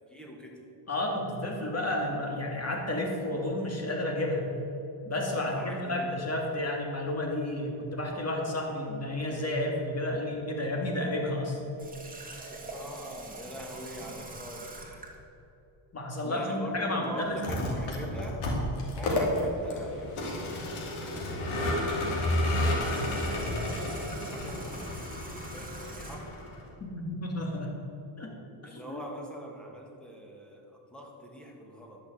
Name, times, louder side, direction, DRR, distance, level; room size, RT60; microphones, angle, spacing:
voice 1, 0.1-0.6 5.3-6.1 12.5-14.7 16.2-18.4 19.0-20.9 22.4-25.0 25.5-26.3 28.6-30.6 30.9-32.0, equal, ahead, 0 dB, 2.2 m, -43 dB
voice 2, 0.9-4.5 5.0-11.6 15.9-18.0 26.8-27.8 28.2-28.3 28.6-29.1, left 1 dB, 30° left, 0 dB, 2.6 m, -31 dB
Water tap faucet, 11.8-15.2 22.6-26.4, right 2 dB, 15° right, 2.0 m, -44 dB
Vehicle, 17.3-26.7, left 1 dB, 80° left, 2.9 m, -31 dB
11.5 x 6.6 x 7.7 m, 2.9 s
cardioid pair, 95°, 48 cm